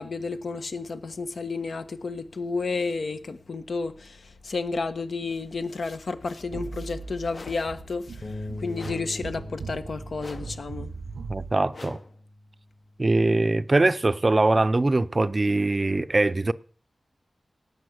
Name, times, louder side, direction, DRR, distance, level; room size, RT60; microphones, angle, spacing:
voice 1, 0.0-10.9, left 4 dB, 70° left, 1.3 m, -31 dB
sound 1, 6.5-11.5, right 4 dB, 80° right, 0.7 m, -39 dB
sound 2, 7.3-7.8 8.8-9.2 10.2-10.7 11.7-12.2, left 3 dB, 50° left, 1.0 m, -44 dB
sound 3, 8.2-14.5, left 1 dB, 30° left, 1.4 m, -42 dB
voice 2, 11.3-12.0 13.0-16.5, right 2 dB, 30° right, 0.6 m, -22 dB
18.0 x 7.1 x 8.0 m
wide cardioid pair, 95°, 0 cm